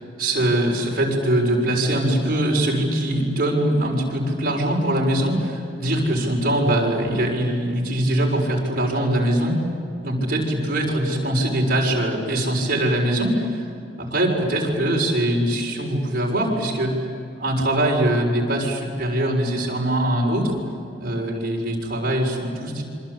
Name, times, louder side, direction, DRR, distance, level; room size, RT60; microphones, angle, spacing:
voice 1, 0.2-9.6 10.0-13.6 14.0-16.9 17.4-20.5 21.0-22.8, right 1 dB, 45° right, -1 dB, 6.5 m, -22 dB
26.5 x 25.5 x 8.5 m, 2.5 s
head